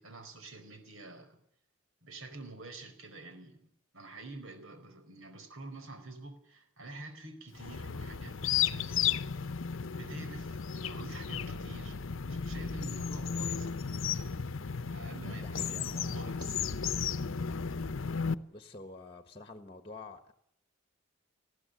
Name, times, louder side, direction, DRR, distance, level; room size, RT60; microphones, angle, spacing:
voice 1, 0.0-1.4 2.0-3.7 3.9-9.1 10.0-13.7 14.6-16.6, right 2 dB, 75° right, 8 dB, 4.5 m, -47 dB
sound 1, 7.5-18.3, left 7 dB, 70° left, 0.8 m, -34 dB
voice 2, 15.2-16.2 16.4-16.5 18.5-20.3, left 3 dB, 25° left, 9 dB, 1.4 m, -48 dB
20.0 x 15.0 x 9.1 m, 0.70 s
head